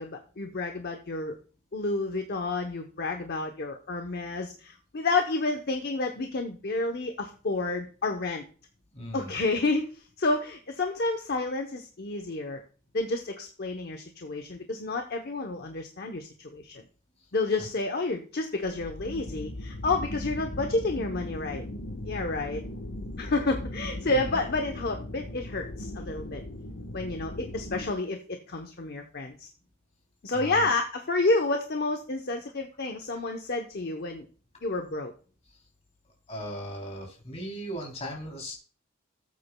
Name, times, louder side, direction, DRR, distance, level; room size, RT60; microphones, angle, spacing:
voice 1, 0.0-1.4 1.7-8.4 9.1-12.6 12.9-16.8 17.3-21.6 22.0-22.6 23.2-26.4 26.9-29.5 30.2-34.2 34.6-35.1, left 3 dB, 50° left, 5 dB, 0.8 m, -30 dB
voice 2, 8.9-9.3 17.6-17.7 24.1-24.4 30.3-30.8 36.3-38.6, equal, 30° left, 0 dB, 3.1 m, -38 dB
sound 1, 18.6-27.9, left 1 dB, 65° left, 1.1 m, -38 dB
17.5 x 8.4 x 2.2 m, 0.38 s
head